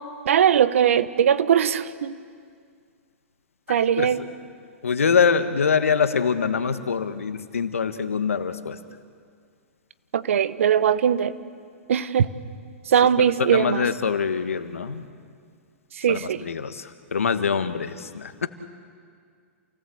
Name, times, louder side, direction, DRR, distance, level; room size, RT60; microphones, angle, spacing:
voice 1, 0.2-2.2 3.7-4.2 10.1-11.3 11.9-12.3 12.9-13.8 16.0-16.4, right 8 dB, 75° right, 15 dB, 1.0 m, -20 dB
voice 2, 3.7-4.1 4.8-8.8 13.2-15.1 16.1-18.5, left 6 dB, 90° left, 10 dB, 1.4 m, -24 dB
28.5 x 18.0 x 7.9 m, 2.1 s
hypercardioid pair, 115°, 7 cm